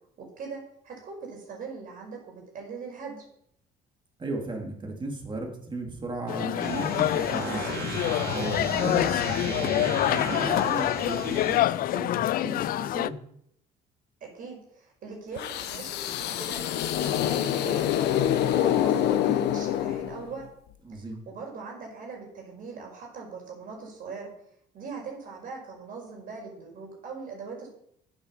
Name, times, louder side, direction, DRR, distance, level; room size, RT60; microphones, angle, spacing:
voice 1, 0.2-3.2 14.2-17.8 18.2-20.4 21.3-24.3 24.7-27.7, right 4 dB, 55° right, 0 dB, 5.2 m, -41 dB
voice 2, 4.2-7.8 8.3-9.7 10.1-13.2 20.8-21.2, right 2 dB, 30° right, 1 dB, 3.2 m, -35 dB
sound 1, 6.3-13.1, left 14 dB, 60° left, 0.4 m, -26 dB
sound 2, 6.6-11.6, right 3 dB, 90° right, 4.4 m, -35 dB
sound 3, 15.4-20.4, left 11 dB, 80° left, 1.0 m, -26 dB
8.9 x 8.3 x 6.9 m, 0.72 s
cardioid pair, 110°, 17 cm